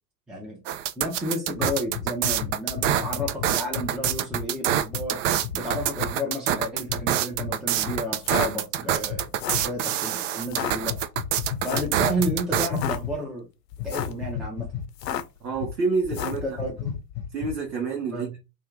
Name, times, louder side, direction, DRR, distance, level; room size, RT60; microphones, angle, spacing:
voice 1, 0.3-0.6 1.0-11.0 11.6-13.5 13.8-14.7 16.3-16.8 18.1-18.4, equal, ahead, 0.5 m, -32 dB
sound 1, 0.7-12.7, right 11 dB, 50° right, 0.5 m, -26 dB
sound 2, 1.5-4.5 4.9-5.1 5.4-6.1 6.8-7.0 7.3-7.5 7.8-8.0 9.0-9.7 10.8-13.2 13.7-15.1 15.6-15.7 16.0-17.7, left 8 dB, 35° left, 0.8 m, -33 dB
sound 3, 8.1-8.5 9.2-9.7 10.4-10.7 11.6-12.0 12.6-13.0 13.7-14.2 14.9-15.4 16.1-16.5, left 9 dB, 75° left, 0.6 m, -31 dB
voice 2, 15.4-16.6 17.3-18.4, right 4 dB, 85° right, 0.9 m, -28 dB
2.7 x 2.4 x 3.3 m
figure-of-eight pair, 85°, 50 cm